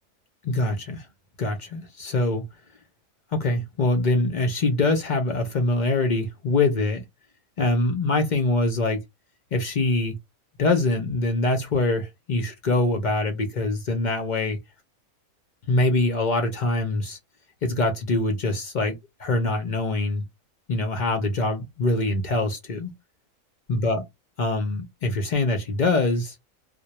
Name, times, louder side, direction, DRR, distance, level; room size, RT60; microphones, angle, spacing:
voice 1, 0.4-1.1 1.4-2.4 3.3-7.0 7.6-9.0 9.5-10.2 10.6-14.6 15.7-17.2 17.6-20.2 20.7-22.9 23.7-24.0 24.4-26.4, left 2 dB, 60° left, 0.5 m, -24 dB
2.2 x 2.1 x 2.8 m
omnidirectional pair, 1.4 m